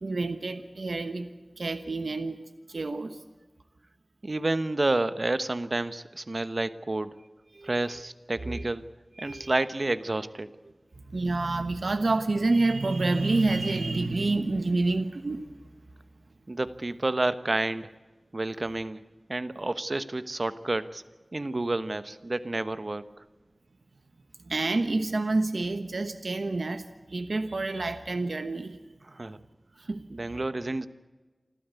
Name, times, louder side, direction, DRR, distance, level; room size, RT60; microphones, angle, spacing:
voice 1, 0.0-1.3 1.6-2.4 2.7-3.2 7.5-7.9 8.4-8.6 9.2-9.5 11.1-15.5 24.4-28.8 29.9-30.0, right 2 dB, 75° right, 9 dB, 1.2 m, -28 dB
voice 2, 4.2-7.2 7.6-8.8 9.2-10.5 16.5-17.9 18.3-19.0 19.3-21.0 21.3-23.0 29.0-29.4 30.1-30.9, right 2 dB, 50° right, 13 dB, 1.1 m, -30 dB
28.5 x 12.5 x 8.3 m, 1.3 s
wide cardioid pair, 60°, 0 cm